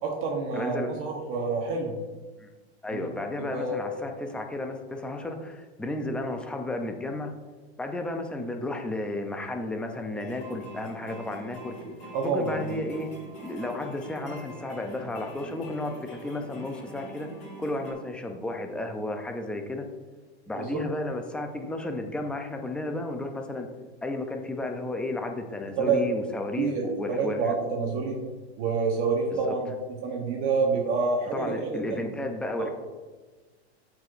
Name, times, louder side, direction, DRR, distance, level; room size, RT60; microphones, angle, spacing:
voice 1, 0.0-1.9 2.9-3.1 3.4-3.8 12.1-12.8 20.6-20.8 25.8-26.0 26.6-26.8 27.1-28.2 28.6-32.1 32.6-32.7, right 4 dB, 40° right, 0 dB, 1.2 m, -28 dB
voice 2, 0.5-1.0 2.4-2.5 2.8-7.3 7.8-11.8 12.2-13.1 13.4-17.3 17.6-19.9 20.5-23.7 24.0-27.6 29.5-29.6 31.3-32.7, left 2 dB, 5° left, 4 dB, 0.4 m, -33 dB
sound 1, 10.1-17.9, right 1 dB, 20° left, 1.9 m, -44 dB
13.0 x 4.7 x 2.5 m, 1.3 s
supercardioid pair, 140°, 33 cm